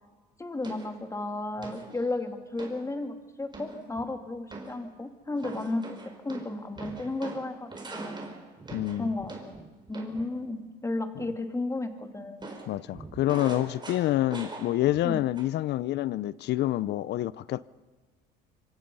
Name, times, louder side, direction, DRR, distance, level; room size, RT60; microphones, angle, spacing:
voice 1, 0.4-6.0 6.2-8.2 9.0-9.6 9.9-12.5 15.0-15.2, left 2 dB, 15° left, 2.6 m, -33 dB
sound 1, 0.6-1.0 1.6-2.0 2.6-2.9 3.5-4.1 4.5-4.9 5.4-10.3 12.4-15.1 15.4-15.7, right 3 dB, 25° right, 4.7 m, -42 dB
voice 2, 8.7-9.1 12.7-17.7, left 14 dB, 60° left, 0.6 m, -27 dB
25.5 x 23.5 x 5.5 m
supercardioid pair, 90°, 20 cm